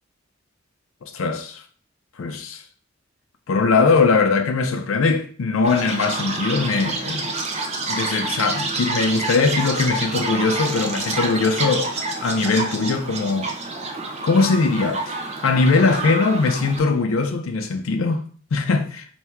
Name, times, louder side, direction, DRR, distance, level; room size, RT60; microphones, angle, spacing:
voice 1, 1.0-1.6 2.2-2.6 3.5-7.3 7.9-13.5 14.2-15.2 15.4-19.0, left 4 dB, 80° left, 0.5 m, -21 dB
Chirp tweet, 5.6-16.8, right 3 dB, 30° right, 0.6 m, -28 dB
3.4 x 2.7 x 4.4 m
head